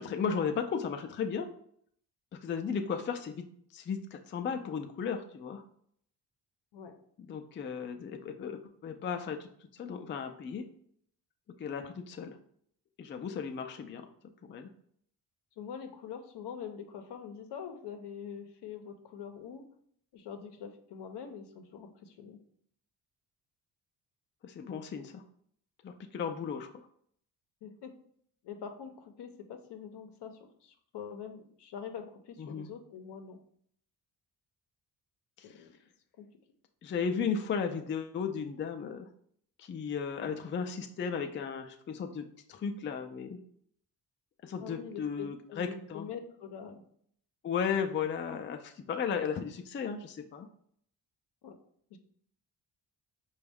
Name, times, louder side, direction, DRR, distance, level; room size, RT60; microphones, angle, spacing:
voice 1, 0.0-1.5 2.4-3.5 3.7-5.6 7.3-9.5 9.7-10.6 11.6-12.4 13.0-14.1 14.5-14.7 24.4-25.2 25.8-26.7 32.4-32.7 35.4-35.5 36.8-39.1 39.6-43.4 44.4-46.1 47.4-50.5, left 6 dB, 30° left, 6 dB, 0.4 m, -35 dB
voice 2, 15.6-19.6 20.1-22.4 27.6-27.9 28.4-33.4 35.4-35.8 36.2-36.3 44.6-46.8 51.4-51.6 51.9-52.0, left 7 dB, 70° left, 6 dB, 0.7 m, -44 dB
5.1 x 2.3 x 3.4 m, 0.65 s
cardioid pair, 90°, 42 cm